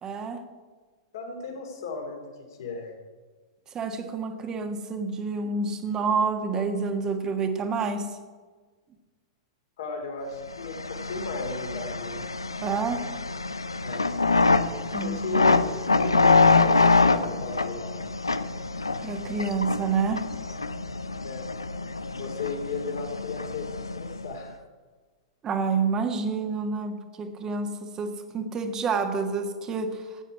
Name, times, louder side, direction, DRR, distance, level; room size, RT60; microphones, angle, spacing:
voice 1, 0.0-0.4 3.7-8.2 12.6-13.1 14.9-15.4 19.0-20.3 25.4-30.2, right 4 dB, 25° right, 6 dB, 1.6 m, -28 dB
voice 2, 1.1-2.9 9.8-12.2 13.8-14.1 15.0-15.6 16.0-18.0 21.2-21.5 22.2-24.6, left 4 dB, 60° left, 3 dB, 2.8 m, -35 dB
sound 1, 10.5-24.4, left 3 dB, 85° left, 0.6 m, -25 dB
16.0 x 9.2 x 4.8 m, 1.4 s
figure-of-eight pair, 100°, 2 cm